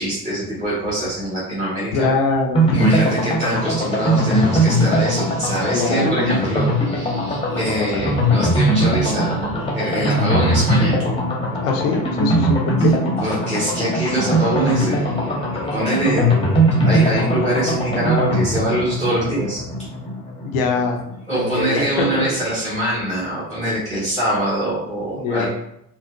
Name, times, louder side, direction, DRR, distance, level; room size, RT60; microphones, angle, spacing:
voice 1, 0.0-2.1 2.7-11.0 13.2-19.6 21.3-25.5, right 1 dB, 20° right, -10 dB, 1.4 m, -24 dB
voice 2, 1.9-3.2 5.7-6.2 11.6-12.9 20.4-21.0 21.4-22.2 25.1-25.5, left 4 dB, 60° left, 2 dB, 0.7 m, -22 dB
sound 1, 2.5-21.2 21.4-21.5 21.8-21.9, right 1 dB, 10° left, 1.0 m, -20 dB
4.4 x 2.0 x 2.6 m, 0.74 s
figure-of-eight pair, 60°, 45 cm